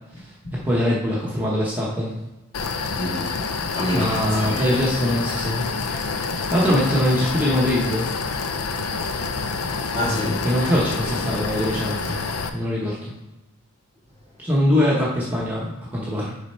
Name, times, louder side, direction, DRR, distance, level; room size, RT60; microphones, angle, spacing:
voice 1, 0.6-2.2 3.9-5.7 6.5-8.1 10.4-12.2 12.5-13.1 14.4-16.3, equal, 10° right, 1.0 m, -22 dB
sound 1, 2.5-12.5, left 4 dB, 75° left, 0.6 m, -27 dB
voice 2, 2.9-4.8 9.7-10.5, left 1 dB, 25° left, 2.2 m, -28 dB
6.6 x 4.0 x 4.4 m
head